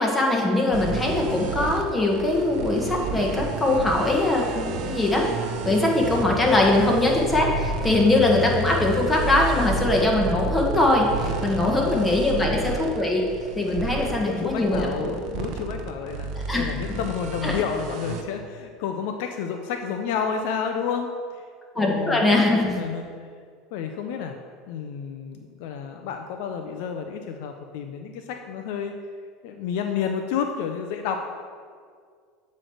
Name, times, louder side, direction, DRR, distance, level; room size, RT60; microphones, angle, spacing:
voice 1, 0.0-5.2 5.6-13.2 13.6-15.2 16.5-16.6 17.4-17.6 21.7-22.8, left 2 dB, 15° left, -1 dB, 1.6 m, -22 dB
sound 1, 0.7-18.2, right 5 dB, 60° right, 0.7 m, -32 dB
sound 2, 6.0-11.8, left 3 dB, 10° right, 1.7 m, -34 dB
voice 2, 11.6-12.2 13.7-21.4 21.8-22.3 22.8-23.3 23.7-24.4 24.7-28.9 29.4-31.3, left 7 dB, 70° left, 4 dB, 0.5 m, -30 dB
7.7 x 3.2 x 6.3 m, 2.1 s
hypercardioid pair, 90°, 0 cm